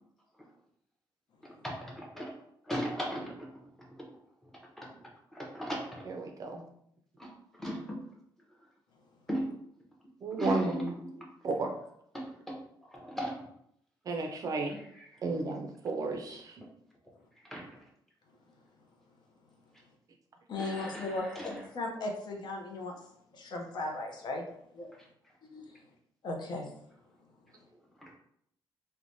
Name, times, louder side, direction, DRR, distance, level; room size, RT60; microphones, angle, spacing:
voice 1, 1.4-2.3 2.6-3.5 3.8-4.0 4.8-6.1 7.2-8.0 9.3-9.5 10.3-11.3 12.1-13.5 14.7-15.0 17.4-17.8 20.5-21.7 28.0-28.2, equal, 5° left, -2 dB, 0.6 m, -38 dB
voice 2, 6.1-6.6 10.2-10.9 11.4-11.7 14.1-14.7 15.2-16.5, right 3 dB, 45° right, 3 dB, 0.4 m, -33 dB
voice 3, 20.5-21.3 21.7-22.9 23.3-24.4 24.8-24.9 25.5-25.6 26.2-26.6, left 2 dB, 55° left, 2 dB, 0.6 m, -36 dB
3.0 x 2.1 x 2.6 m, 0.70 s
cardioid pair, 140°, 9 cm